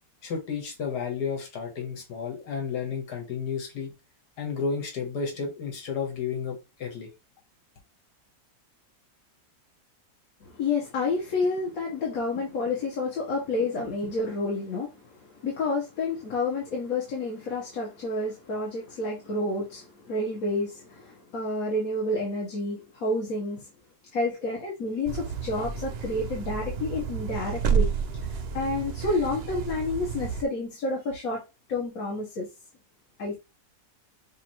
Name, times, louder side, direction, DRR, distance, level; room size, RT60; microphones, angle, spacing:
voice 1, 0.2-3.9 4.4-7.1, left 6 dB, 85° left, 1.9 m, -32 dB
voice 2, 10.4-23.7 24.1-27.9 28.3-31.4 31.7-32.5 33.2-33.4, left 2 dB, 65° left, 1.6 m, -29 dB
sound 1, 25.1-30.4, right 6 dB, 60° right, 0.7 m, -30 dB
6.5 x 2.5 x 3.0 m
omnidirectional pair, 1.7 m